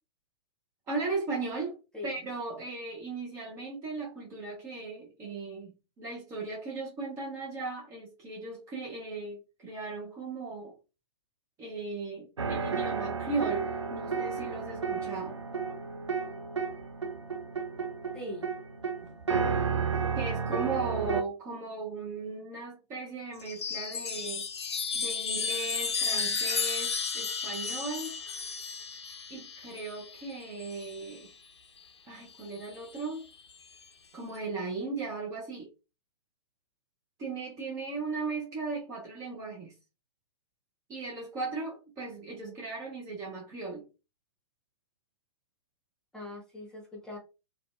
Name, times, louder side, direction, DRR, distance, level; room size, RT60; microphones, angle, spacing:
voice 1, 0.9-1.8 2.0-10.8 11.6-15.4 20.2-24.4 24.9-28.1 29.3-31.3 32.0-33.2 34.1-35.7 37.2-39.7 40.9-43.8, right 3 dB, 20° right, 0.6 m, -37 dB
sound 1, 12.4-21.2, right 5 dB, 85° right, 0.4 m, -32 dB
voice 2, 18.1-18.5 42.4-42.6 46.1-47.2, left 1 dB, 5° left, 0.9 m, -41 dB
Chime, 23.4-31.2 32.4-33.0, left 5 dB, 65° left, 0.5 m, -33 dB
2.6 x 2.1 x 2.4 m
figure-of-eight pair, 115°, 15 cm